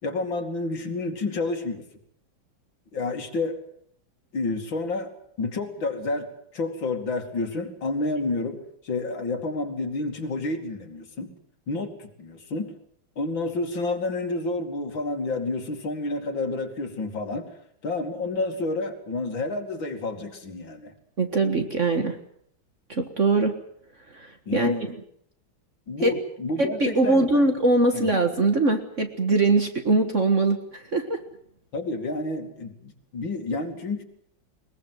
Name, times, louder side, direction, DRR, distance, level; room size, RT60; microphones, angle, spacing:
voice 1, 0.0-1.9 2.9-3.6 4.3-5.1 5.4-11.3 11.7-12.7 13.2-17.6 17.8-20.9 24.5-24.9 25.9-27.5 27.9-28.1 31.7-34.0, left 2 dB, 75° left, 4 dB, 3.3 m, -29 dB
voice 2, 21.2-22.2 22.9-23.5 24.1-24.7 26.0-26.1 26.6-31.2, right 2 dB, 40° right, 6 dB, 1.8 m, -22 dB
21.5 x 21.5 x 7.9 m, 0.67 s
omnidirectional pair, 2.1 m